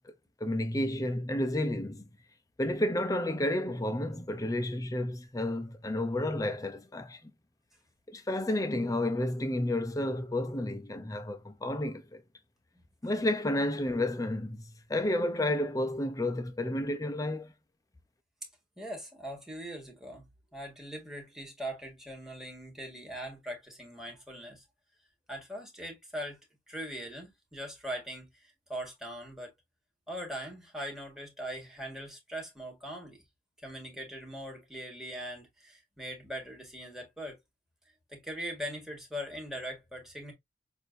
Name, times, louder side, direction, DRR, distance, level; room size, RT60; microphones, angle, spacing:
voice 1, 0.4-2.0 2.6-7.3 8.1-12.2 13.0-17.5, left 1 dB, 20° left, 0.6 m, -31 dB
voice 2, 18.8-20.2 20.5-24.6 25.3-26.4 26.7-29.5 30.1-33.2 33.6-37.4 37.8-40.3, equal, ahead, 1.6 m, -41 dB
6.3 x 2.7 x 2.6 m
head